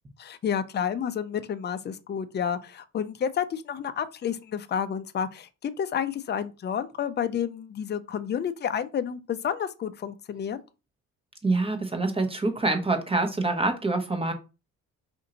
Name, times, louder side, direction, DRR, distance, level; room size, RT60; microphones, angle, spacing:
voice 1, 0.2-10.6, left 8 dB, 35° left, 0.5 m, -30 dB
voice 2, 11.4-14.3, right 2 dB, 20° right, 1.0 m, -26 dB
4.3 x 2.7 x 3.8 m
cardioid pair, 90°, 30 cm